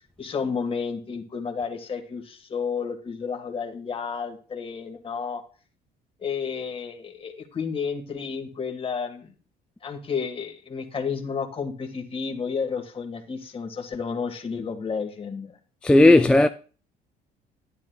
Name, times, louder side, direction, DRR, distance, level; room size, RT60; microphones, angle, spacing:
voice 1, 0.2-5.4 6.2-9.3 9.8-15.6, left 5 dB, 35° left, 1.6 m, -31 dB
voice 2, 15.8-16.5, left 2 dB, 5° left, 0.3 m, -14 dB
11.0 x 9.7 x 2.3 m
cardioid pair, 110°, 17 cm